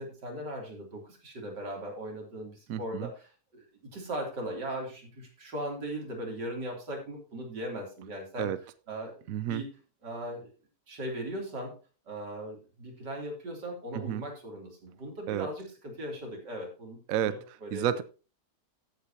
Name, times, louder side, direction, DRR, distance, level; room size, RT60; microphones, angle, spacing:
voice 1, 0.0-8.5 8.9-9.2 9.5-9.7 10.0-10.5 10.9-11.8 12.1-18.0, right 1 dB, 90° right, 3.9 m, -38 dB
voice 2, 2.7-3.1 8.4-8.6 9.3-9.6 13.9-14.2 15.3-15.5 17.1-18.0, right 10 dB, 65° right, 0.9 m, -31 dB
15.0 x 8.3 x 2.8 m
omnidirectional pair, 1.8 m